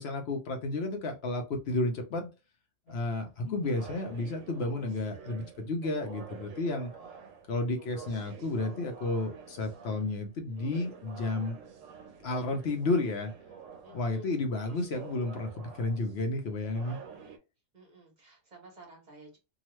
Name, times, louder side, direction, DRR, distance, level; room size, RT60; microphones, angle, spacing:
voice 1, 0.0-2.3 2.9-6.9 7.5-11.6 12.2-13.3 13.9-17.0, left 2 dB, 60° left, 5 dB, 0.8 m, -32 dB
sound 1, 2.9-17.4, right 6 dB, 85° right, 1.0 m, -49 dB
voice 2, 13.8-14.5 17.7-19.4, right 1 dB, 35° right, 0 dB, 1.1 m, -52 dB
2.9 x 2.3 x 3.0 m, 0.28 s
omnidirectional pair, 1.3 m